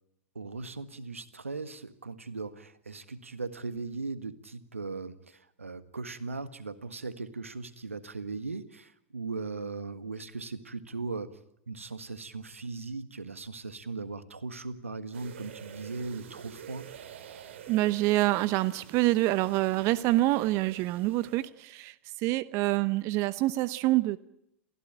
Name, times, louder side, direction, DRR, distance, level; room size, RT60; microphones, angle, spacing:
voice 1, 0.3-11.3 11.7-16.9, right 3 dB, 85° right, 1.7 m, -38 dB
sound 1, 15.1-21.5, right 9 dB, 65° right, 2.7 m, -48 dB
voice 2, 17.7-24.2, right 17 dB, 45° right, 0.9 m, -26 dB
29.5 x 15.5 x 9.0 m
figure-of-eight pair, 90°, 7 cm